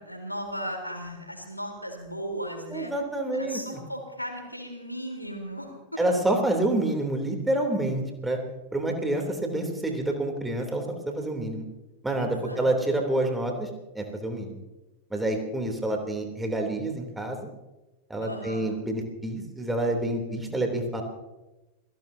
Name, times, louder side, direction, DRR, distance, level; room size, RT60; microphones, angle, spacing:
voice 1, 0.0-2.9 3.3-6.0 12.2-12.7 18.2-18.7, equal, 90° left, 3 dB, 3.8 m, -36 dB
voice 2, 2.7-3.6 6.0-8.4 8.7-11.6 12.0-13.7 13.9-14.6 15.1-17.5 18.1-21.0, right 1 dB, 5° right, 3 dB, 3.2 m, -28 dB
28.5 x 17.5 x 2.8 m, 1.1 s
figure-of-eight pair, 90°, 0 cm